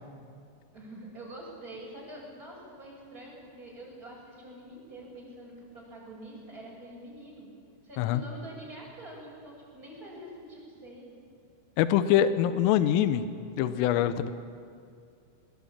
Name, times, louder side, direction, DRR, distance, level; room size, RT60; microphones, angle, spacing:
voice 1, 0.7-7.5 7.8-11.2, right 1 dB, 15° right, -3 dB, 7.4 m, -46 dB
voice 2, 11.8-13.3 13.6-14.3, left 11 dB, 80° left, 12 dB, 3.5 m, -24 dB
22.0 x 21.5 x 8.8 m, 2.3 s
omnidirectional pair, 5.9 m